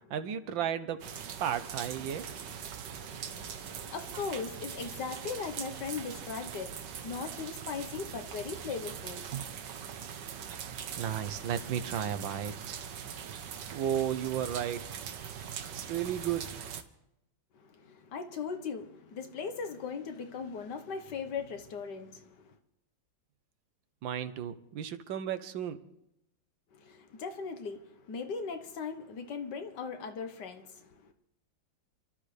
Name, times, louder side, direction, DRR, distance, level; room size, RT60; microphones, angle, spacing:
voice 1, 0.1-1.1 1.4-2.4 11.0-12.8 13.7-14.8 15.7-16.6 24.0-25.8, right 9 dB, 90° right, 1.7 m, -34 dB
sound 1, 1.0-16.8, right 8 dB, 70° right, 1.6 m, -42 dB
voice 2, 2.3-9.3 17.5-22.6 26.7-31.1, left 5 dB, 65° left, 1.8 m, -39 dB
28.0 x 13.0 x 3.4 m
omnidirectional pair, 2.0 m